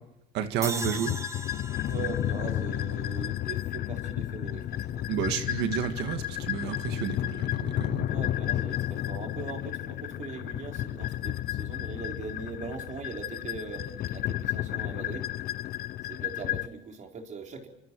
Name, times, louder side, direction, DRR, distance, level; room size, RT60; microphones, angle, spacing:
voice 1, 0.3-1.2 5.1-8.1, right 9 dB, 90° right, 7 dB, 1.9 m, -31 dB
sound 1, 0.6-3.9, right 3 dB, 15° right, 1.3 m, -40 dB
sound 2, 0.8-16.7, left 13 dB, 65° left, 0.9 m, -32 dB
voice 2, 1.9-5.1 8.0-15.3 16.0-17.7, right 4 dB, 45° right, 2 dB, 4.2 m, -41 dB
29.0 x 24.5 x 4.7 m, 0.86 s
cardioid pair, 110°, 17 cm